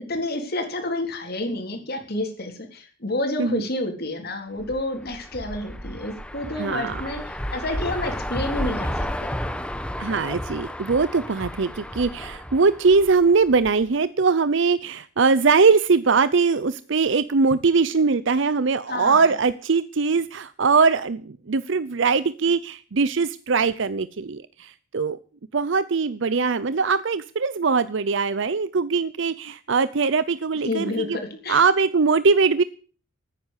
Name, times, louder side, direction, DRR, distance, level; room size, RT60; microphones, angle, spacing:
voice 1, 0.1-9.3 18.9-19.3 30.6-31.6, left 2 dB, 50° left, 3 dB, 3.7 m, -29 dB
sound 1, 4.6-13.8, equal, 5° left, 1.0 m, -32 dB
voice 2, 6.6-7.0 10.0-25.2 25.5-31.2 31.5-32.6, right 4 dB, 65° right, 15 dB, 0.6 m, -21 dB
15.0 x 9.7 x 8.2 m, 0.41 s
head